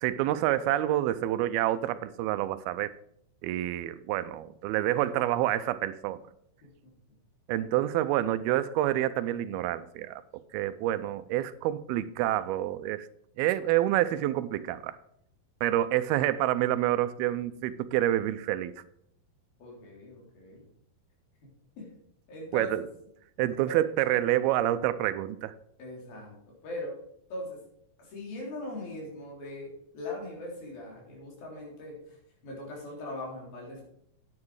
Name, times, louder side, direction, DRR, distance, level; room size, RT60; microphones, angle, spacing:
voice 1, 0.0-2.9 3.4-6.2 7.5-13.1 13.4-15.0 15.6-18.7 22.5-22.8 23.4-25.5, right 13 dB, 85° right, 2.5 m, -28 dB
voice 2, 6.6-6.9 19.6-20.6 21.8-21.9 22.3-22.8 23.6-23.7 25.8-26.4 26.6-27.0 27.3-27.6 28.0-32.2 32.4-33.8, left 1 dB, 70° left, 5.4 m, -40 dB
9.7 x 9.6 x 4.7 m
omnidirectional pair, 4.4 m